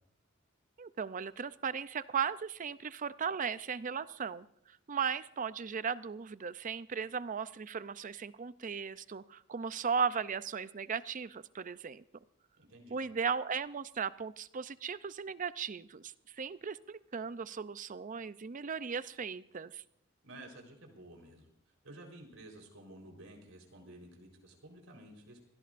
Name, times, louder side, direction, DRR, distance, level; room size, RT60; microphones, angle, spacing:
voice 1, 0.8-12.0 12.9-19.8, right 6 dB, 40° right, 15 dB, 0.5 m, -37 dB
voice 2, 12.6-13.0 20.2-21.5 21.8-25.4, right 1 dB, 80° right, 2 dB, 4.1 m, -52 dB
25.5 x 16.5 x 2.6 m, 0.71 s
head